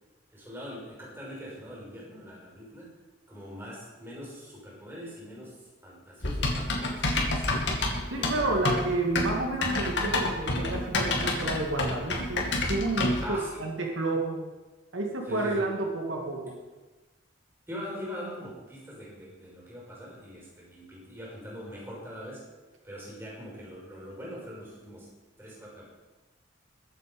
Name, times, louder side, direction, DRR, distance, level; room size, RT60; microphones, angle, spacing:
voice 1, 0.3-3.0 3.3-7.7 8.1-8.7 13.2-13.6 15.3-15.7 17.7-22.4 22.8-25.1 25.4-25.9, equal, 10° right, -5 dB, 5.6 m, -42 dB
Typing, 6.2-13.3, left 2 dB, 60° left, 2.3 m, -28 dB
voice 2, 8.1-14.4 14.9-16.5, right 2 dB, 80° right, 0 dB, 2.4 m, -30 dB
21.5 x 8.3 x 5.4 m, 1.2 s
head